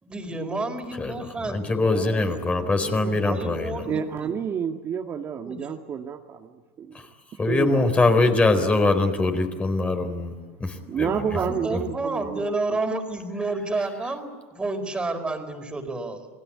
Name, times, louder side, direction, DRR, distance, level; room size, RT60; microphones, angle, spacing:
voice 1, 0.0-4.3 5.4-5.6 11.3-16.3, right 2 dB, 15° right, 6 dB, 4.5 m, -31 dB
voice 2, 1.5-3.9 7.4-10.3 10.6-11.2, left 2 dB, 15° left, 7 dB, 4.0 m, -22 dB
voice 3, 3.9-6.5 6.8-7.0 7.5-8.4 10.9-12.8, right 7 dB, 35° right, 3 dB, 1.7 m, -30 dB
29.0 x 20.5 x 8.7 m, 1.5 s
supercardioid pair, 115°, 7 cm